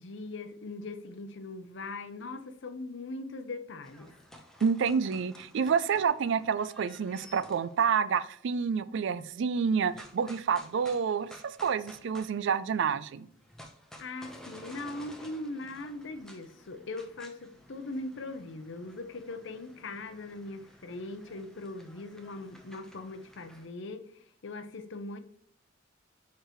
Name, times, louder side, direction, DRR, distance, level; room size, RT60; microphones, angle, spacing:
voice 1, 0.0-4.1 14.0-24.0 24.4-25.2, left 2 dB, 65° left, 0.7 m, -40 dB
sound 1, 3.8-7.7 9.8-12.8 13.1-23.7, left 1 dB, 5° left, 0.8 m, -53 dB
voice 2, 4.6-13.3, right 6 dB, 65° right, 0.4 m, -28 dB
6.7 x 4.7 x 3.0 m
head